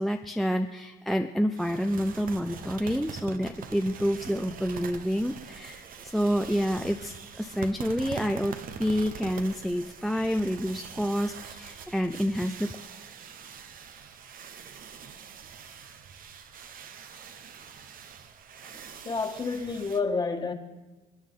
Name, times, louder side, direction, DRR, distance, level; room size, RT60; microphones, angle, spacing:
voice 1, 0.0-12.7, equal, ahead, 0.5 m, -28 dB
sound 1, 1.6-20.0, right 6 dB, 55° right, 1.0 m, -44 dB
voice 2, 19.0-20.5, left 4 dB, 25° left, 1.5 m, -29 dB
28.0 x 9.5 x 3.7 m
cardioid pair, 110°, 17 cm